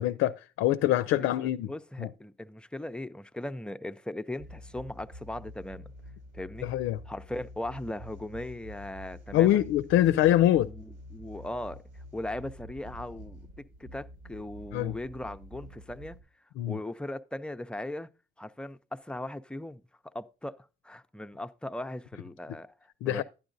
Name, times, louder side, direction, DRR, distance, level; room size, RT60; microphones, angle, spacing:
voice 1, 0.0-1.7 2.0-2.1 6.6-7.0 9.3-10.7 14.7-15.0 16.6-16.8 23.0-23.2, left 13 dB, 90° left, 0.4 m, -24 dB
voice 2, 1.1-5.9 6.3-6.7 7.1-9.7 10.6-11.8 12.1-13.4 13.8-16.2 16.7-18.1 18.4-23.2, left 1 dB, 5° left, 0.5 m, -39 dB
sound 1, 4.4-16.2, left 1 dB, 85° right, 4.9 m, -47 dB
11.5 x 9.7 x 2.6 m
cardioid pair, 90°, 20 cm